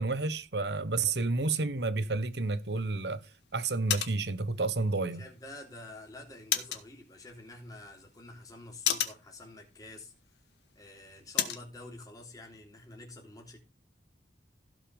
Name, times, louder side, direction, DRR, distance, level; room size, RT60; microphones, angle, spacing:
voice 1, 0.0-3.2 3.5-5.2, right 3 dB, 70° right, 1.2 m, -30 dB
sound 1, 2.2-11.7, left 9 dB, 75° left, 1.9 m, -38 dB
voice 2, 5.1-10.1 10.7-13.6, left 2 dB, 20° left, 3.4 m, -48 dB
16.5 x 5.6 x 5.3 m
head